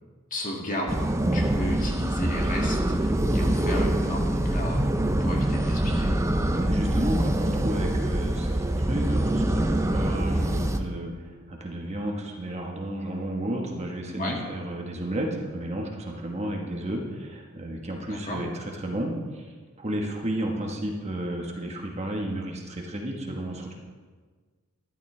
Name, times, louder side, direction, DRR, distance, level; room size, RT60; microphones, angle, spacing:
voice 1, 0.3-4.9 5.2-6.1 14.2-14.4 18.1-18.4, left 1 dB, 40° left, -1 dB, 2.0 m, -34 dB
sound 1, 0.9-10.8, right 1 dB, 15° right, 0.5 m, -25 dB
voice 2, 6.5-11.1 11.5-23.7, right 1 dB, 30° right, 0 dB, 1.2 m, -32 dB
13.0 x 11.5 x 3.3 m, 1.5 s
head